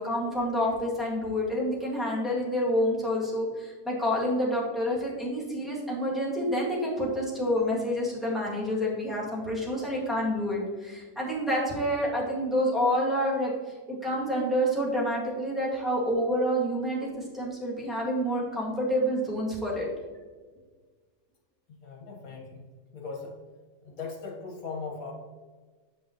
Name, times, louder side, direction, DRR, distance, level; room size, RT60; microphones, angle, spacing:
voice 1, 0.0-13.5 13.9-19.9, equal, ahead, -5 dB, 1.9 m, -28 dB
voice 2, 21.7-22.6 22.9-23.3 23.8-25.1, left 4 dB, 60° left, -1 dB, 1.9 m, -39 dB
8.1 x 5.5 x 3.1 m, 1.4 s
omnidirectional pair, 1.7 m